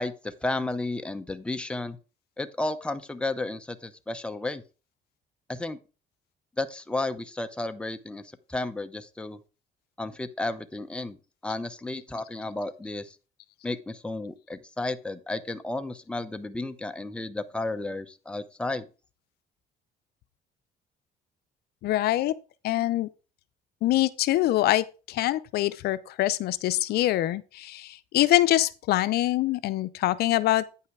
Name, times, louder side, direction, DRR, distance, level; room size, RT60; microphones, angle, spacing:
voice 1, 0.0-2.0 2.4-4.6 5.5-5.8 6.6-8.2 8.5-9.4 10.0-11.2 11.4-13.1 13.6-18.9, left 2 dB, 5° left, 0.7 m, -32 dB
voice 2, 21.8-22.3 22.6-23.1 23.8-30.6, left 15 dB, 70° left, 0.6 m, -24 dB
9.2 x 5.6 x 4.8 m
cardioid pair, 110°, 17 cm